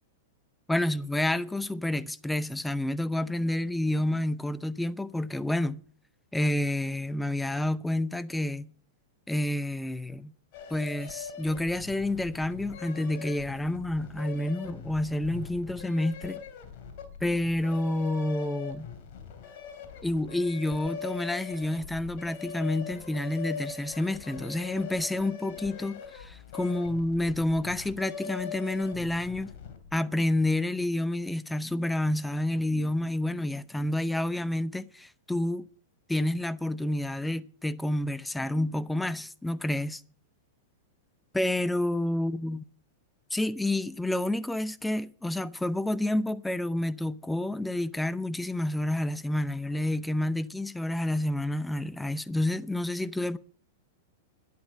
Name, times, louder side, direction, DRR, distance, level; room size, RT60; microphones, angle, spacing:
voice 1, 0.7-5.8 6.3-8.7 9.3-10.3 10.7-16.4 17.2-18.9 20.0-29.5 29.9-35.7 36.1-40.0 41.3-42.6 43.3-53.4, left 1 dB, 5° left, 0.7 m, -29 dB
sound 1, 10.5-30.0, left 7 dB, 55° left, 3.1 m, -42 dB
12.0 x 10.5 x 6.3 m
hypercardioid pair, 110°, 0 cm